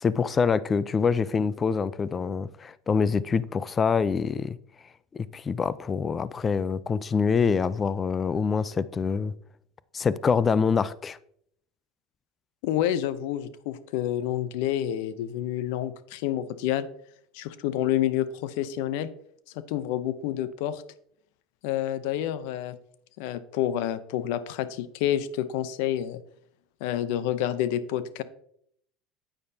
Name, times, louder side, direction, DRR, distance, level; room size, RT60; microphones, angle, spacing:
voice 1, 0.0-4.6 5.1-9.3 9.9-11.2, left 5 dB, 30° left, 0.5 m, -25 dB
voice 2, 12.6-16.9 17.3-19.1 19.5-20.8 21.6-22.8 23.2-26.2 26.8-28.2, left 11 dB, 75° left, 0.7 m, -28 dB
9.3 x 9.0 x 2.8 m
hypercardioid pair, 85°, 0 cm